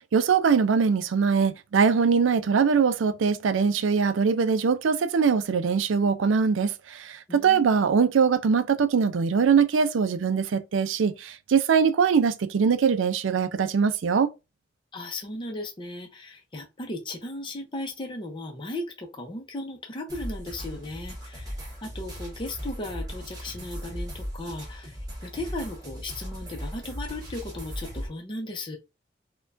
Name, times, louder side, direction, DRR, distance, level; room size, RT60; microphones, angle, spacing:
voice 1, 0.1-14.3, right 6 dB, 85° right, 0.4 m, -22 dB
voice 2, 7.3-7.9 14.9-21.5 21.8-28.8, left 1 dB, 25° left, 0.7 m, -36 dB
sound 1, 20.1-28.1, equal, 20° right, 1.3 m, -37 dB
4.3 x 2.3 x 2.5 m
head